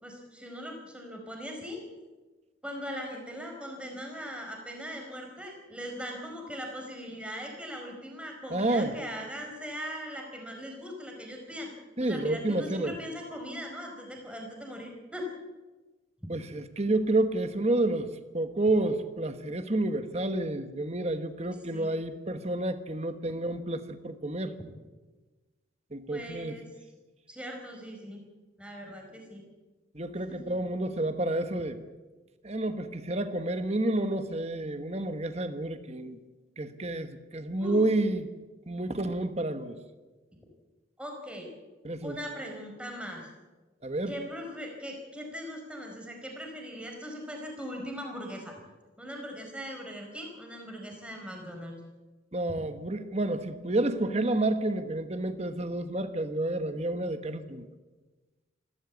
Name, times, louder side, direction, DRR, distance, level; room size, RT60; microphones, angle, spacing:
voice 1, 0.0-1.8 2.6-11.7 12.0-15.3 21.7-21.9 26.1-26.6 27.3-28.2 28.6-29.4 37.6-37.9 41.0-41.5 42.0-43.3 44.1-48.5 49.0-51.7 52.5-52.6, equal, 5° right, 1 dB, 4.7 m, -40 dB
voice 2, 8.5-8.9 12.0-13.0 16.3-18.1 18.3-24.5 25.9-26.6 29.9-31.8 32.4-36.2 36.6-38.3 38.7-39.7 41.8-42.2 43.8-44.1 52.3-57.7, right 2 dB, 35° right, 9 dB, 1.3 m, -30 dB
27.5 x 13.0 x 8.4 m, 1.2 s
head